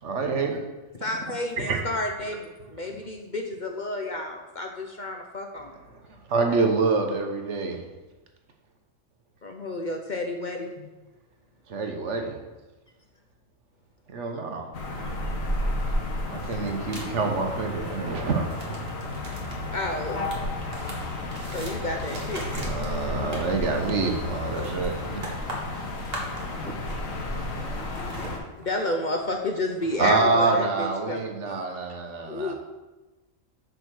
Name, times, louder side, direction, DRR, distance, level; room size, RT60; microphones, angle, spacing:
voice 1, 0.0-0.6 1.6-1.8 5.9-7.8 11.7-12.4 14.1-14.7 16.3-18.8 22.5-25.3 30.0-32.5, right 4 dB, 65° right, 4 dB, 1.3 m, -27 dB
voice 2, 1.0-5.7 9.4-10.9 19.7-20.2 21.5-22.6 27.3-27.5 28.6-31.2 31.5-31.6 32.3-32.5, left 1 dB, 45° left, 3 dB, 0.7 m, -31 dB
sound 1, 14.7-28.4, left 2 dB, 85° left, 1.6 m, -32 dB
sound 2, 16.3-17.1 18.3-27.4 27.6-30.3, right 1 dB, 50° right, 1.8 m, -41 dB
voice 3, 27.5-28.4, equal, 10° left, 2 dB, 0.4 m, -44 dB
6.7 x 5.0 x 6.3 m, 1.2 s
omnidirectional pair, 1.4 m